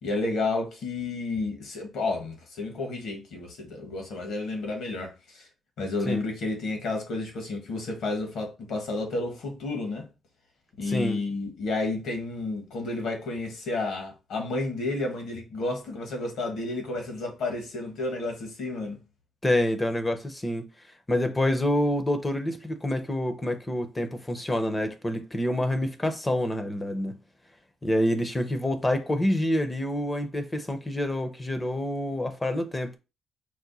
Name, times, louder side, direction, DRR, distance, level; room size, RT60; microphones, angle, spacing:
voice 1, 0.0-5.5 5.8-10.1 10.8-19.0, left 2 dB, 75° left, 1.5 m, -31 dB
voice 2, 10.9-11.2 19.4-20.7 21.1-27.2 27.8-33.0, left 1 dB, 20° left, 0.7 m, -27 dB
4.8 x 2.1 x 4.0 m
cardioid pair, 90°, 0 cm